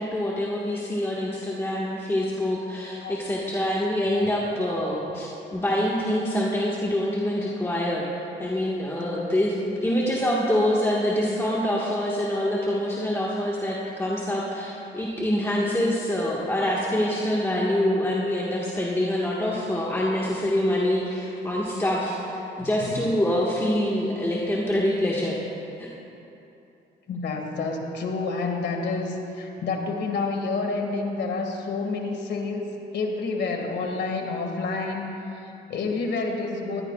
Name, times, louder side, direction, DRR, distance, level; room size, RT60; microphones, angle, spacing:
voice 1, 0.0-25.4 25.8-25.9, left 1 dB, 10° left, -5 dB, 1.7 m, -25 dB
voice 2, 22.6-23.0 27.1-32.7 32.9-35.1 35.4-36.8, left 3 dB, 60° left, 2 dB, 2.1 m, -29 dB
21.0 x 14.0 x 2.4 m, 2.9 s
cardioid pair, 90°, 20 cm